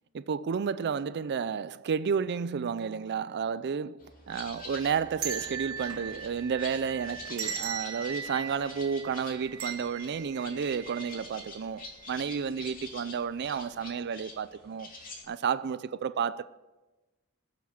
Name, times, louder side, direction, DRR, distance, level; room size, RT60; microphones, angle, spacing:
voice 1, 0.1-14.9 15.3-16.4, right 6 dB, 50° right, 0.4 m, -31 dB
sound 1, 4.0-15.2, left 3 dB, 40° left, 2.9 m, -47 dB
sound 2, 4.3-11.5 11.8-11.9 12.8-13.1 13.5-13.7, right 7 dB, 70° right, 2.0 m, -39 dB
20.0 x 7.3 x 7.3 m
head